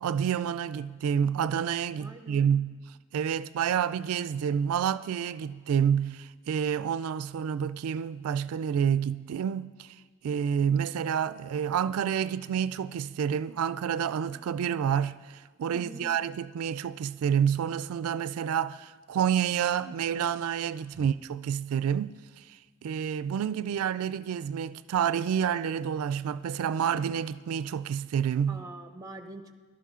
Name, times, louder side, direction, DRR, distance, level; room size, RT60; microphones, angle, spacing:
voice 1, 0.0-2.8 3.1-28.6, right 8 dB, 85° right, 0.3 m, -29 dB
voice 2, 2.0-2.5 15.7-16.1 20.9-21.1 28.5-29.5, right 2 dB, 15° right, 0.7 m, -45 dB
21.5 x 12.0 x 3.7 m
head